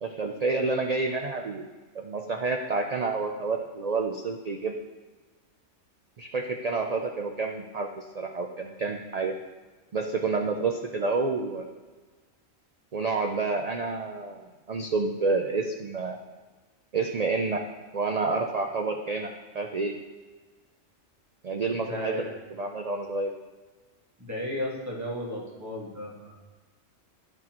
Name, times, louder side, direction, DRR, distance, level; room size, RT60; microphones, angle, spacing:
voice 1, 0.0-1.7 1.9-4.7 6.2-9.3 9.9-11.6 12.9-16.2 16.9-17.6 17.9-19.9 21.4-22.3 22.6-23.3, right 3 dB, 75° right, 3 dB, 0.3 m, -29 dB
voice 2, 21.7-22.3 24.2-26.4, left 1 dB, 15° right, -3 dB, 1.4 m, -34 dB
11.0 x 6.1 x 2.9 m, 1.3 s
omnidirectional pair, 1.3 m